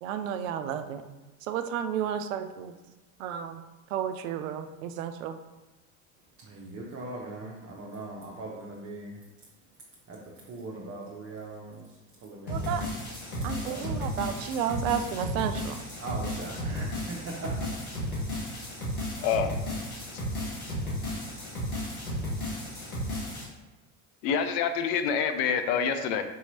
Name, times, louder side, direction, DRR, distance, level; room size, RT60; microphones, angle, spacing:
voice 1, 0.0-1.0 1.5-2.7 3.2-3.6 3.9-5.4 12.5-12.9 13.4-15.8, right 9 dB, 65° right, 9 dB, 0.5 m, -32 dB
voice 2, 6.4-9.2 10.1-12.9 13.4-14.0 16.0-17.8, right 2 dB, 30° right, -2 dB, 0.8 m, -40 dB
sound 1, 12.5-23.4, left 1 dB, 80° left, 1.4 m, -34 dB
voice 3, 19.2-19.5 24.2-26.2, left 6 dB, 55° left, 8 dB, 0.6 m, -26 dB
5.3 x 2.9 x 2.7 m, 1.1 s
figure-of-eight pair, 65°, 42 cm